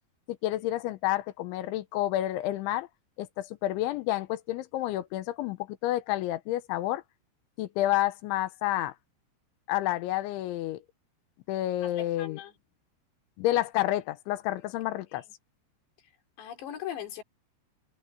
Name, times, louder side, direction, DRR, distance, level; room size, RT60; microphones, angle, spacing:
voice 1, 0.3-2.9 3.2-7.0 7.6-8.9 9.7-10.8 11.5-12.4 13.4-15.2, left 15 dB, 80° left, 3.3 m, -29 dB
voice 2, 11.8-12.5 16.4-17.2, left 10 dB, 65° left, 5.2 m, -39 dB
omnidirectional pair, 5.4 m